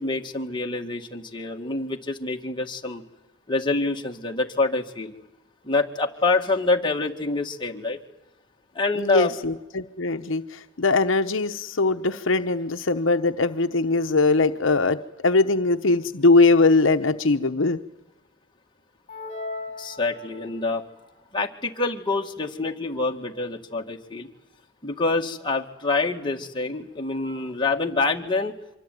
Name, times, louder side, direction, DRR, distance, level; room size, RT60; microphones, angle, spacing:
voice 1, 0.0-3.0 3.5-5.1 5.6-8.0 8.7-9.4 19.8-20.8 21.3-24.3 24.8-28.5, left 3 dB, 25° left, 1 dB, 2.0 m, -26 dB
voice 2, 9.0-10.4 10.8-15.0 15.2-17.8, left 3 dB, 75° left, 8 dB, 0.9 m, -21 dB
sound 1, 19.1-20.8, left 3 dB, 40° left, 2.7 m, -37 dB
25.0 x 24.0 x 9.3 m, 0.91 s
head